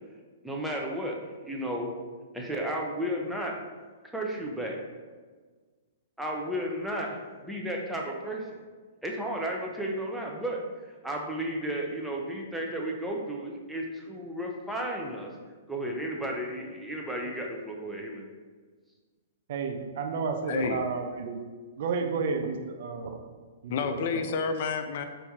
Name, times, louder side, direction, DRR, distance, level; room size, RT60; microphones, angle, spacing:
voice 1, 0.4-1.9 2.3-3.6 4.1-4.8 6.2-8.4 9.0-15.3 15.7-18.3, right 1 dB, 5° right, -1 dB, 0.6 m, -33 dB
voice 2, 19.5-21.4 21.8-23.2 23.6-24.3, right 5 dB, 60° right, 4 dB, 0.5 m, -31 dB
voice 3, 20.5-20.8 23.7-25.0, left 5 dB, 55° left, 7 dB, 0.4 m, -29 dB
4.5 x 2.7 x 3.5 m, 1.4 s
hypercardioid pair, 125°, 0 cm